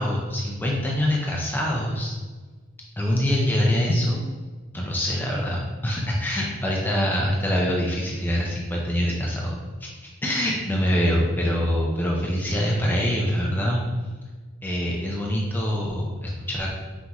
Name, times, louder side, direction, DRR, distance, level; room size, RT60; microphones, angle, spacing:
voice 1, 0.0-2.1 3.0-4.2 4.7-9.6 9.8-9.9 10.2-13.8 14.6-16.7, equal, 10° left, -2 dB, 0.4 m, -24 dB
5.7 x 2.6 x 2.9 m, 1.4 s
head